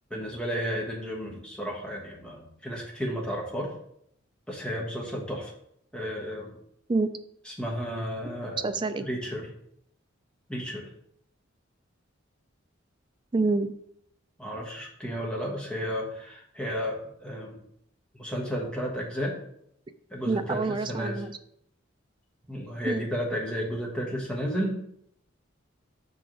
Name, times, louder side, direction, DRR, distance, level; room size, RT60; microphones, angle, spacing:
voice 1, 0.1-3.7 4.5-5.5 5.9-6.6 7.5-8.7 9.0-9.5 10.5-10.9 14.4-17.6 18.1-19.4 20.1-20.6 20.9-21.2 22.5-24.8, equal, 5° left, -2 dB, 1.1 m, -32 dB
voice 2, 8.6-9.1 13.3-13.7 20.2-21.4 22.8-23.1, right 3 dB, 25° right, 10 dB, 0.3 m, -27 dB
6.9 x 4.9 x 3.8 m, 0.72 s
head